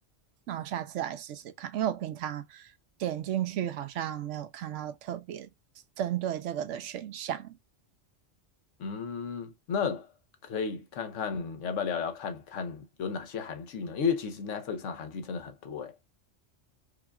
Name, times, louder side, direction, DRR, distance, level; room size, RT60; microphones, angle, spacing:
voice 1, 0.5-2.7 3.0-5.5 6.0-7.6, right 11 dB, 80° right, 0.9 m, -34 dB
voice 2, 8.8-10.1 10.4-16.0, left 6 dB, 85° left, 1.1 m, -33 dB
4.8 x 2.3 x 2.4 m
omnidirectional pair, 1.3 m